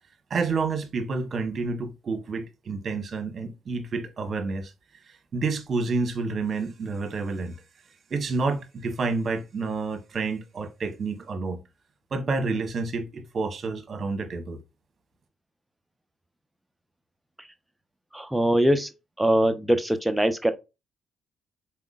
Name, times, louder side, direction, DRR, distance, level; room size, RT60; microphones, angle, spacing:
voice 1, 0.3-4.7 5.3-7.6 8.1-11.6 12.1-14.6, right 4 dB, 50° right, 1.3 m, -29 dB
voice 2, 18.1-18.9 19.2-20.5, right 1 dB, 5° right, 0.8 m, -22 dB
4.4 x 3.6 x 2.4 m
supercardioid pair, 55°, 0 cm